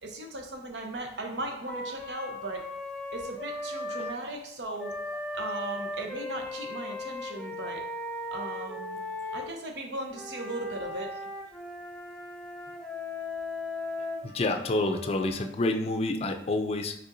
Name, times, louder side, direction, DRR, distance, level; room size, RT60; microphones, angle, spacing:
voice 1, 0.0-2.6 3.1-7.8 8.3-9.0 9.3-11.1, right 1 dB, 85° right, 2 dB, 0.9 m, -37 dB
Wind instrument woodwind instrument, 1.7-4.2 4.8-9.5 10.1-15.5, left 2 dB, 5° left, 0.7 m, -37 dB
voice 2, 14.2-17.0, left 2 dB, 35° left, 6 dB, 0.4 m, -28 dB
5.4 x 3.5 x 2.6 m, 0.77 s
head